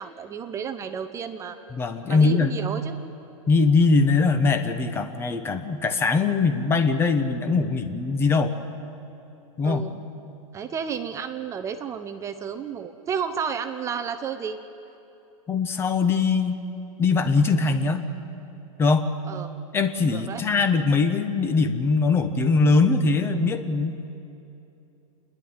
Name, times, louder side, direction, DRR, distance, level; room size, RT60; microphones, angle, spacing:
voice 1, 0.0-1.6 2.1-3.0 9.6-10.0 10.5-14.6 19.3-19.5 20.1-20.4, right 7 dB, 15° right, 8 dB, 0.7 m, -32 dB
voice 2, 1.7-2.5 3.5-8.5 9.6-9.8 15.5-16.6 17.0-18.0 18.8-19.1 19.7-23.9, left 4 dB, 15° left, 7 dB, 1.0 m, -21 dB
28.0 x 11.0 x 9.7 m, 2.9 s
supercardioid pair, 155°, 18 cm